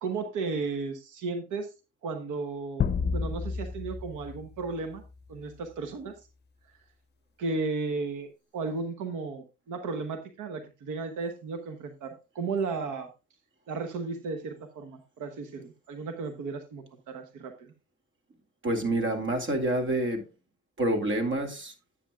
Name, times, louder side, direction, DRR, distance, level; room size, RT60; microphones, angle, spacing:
voice 1, 0.0-1.7 2.0-5.0 5.3-6.3 7.4-8.3 8.5-13.1 13.7-17.7, right 4 dB, 85° right, 1.1 m, -34 dB
sound 1, 2.8-5.4, left 5 dB, 35° left, 0.7 m, -31 dB
voice 2, 18.6-20.2 20.8-21.7, right 1 dB, 40° right, 2.4 m, -27 dB
10.5 x 8.5 x 2.4 m
cardioid pair, 90°, 30 cm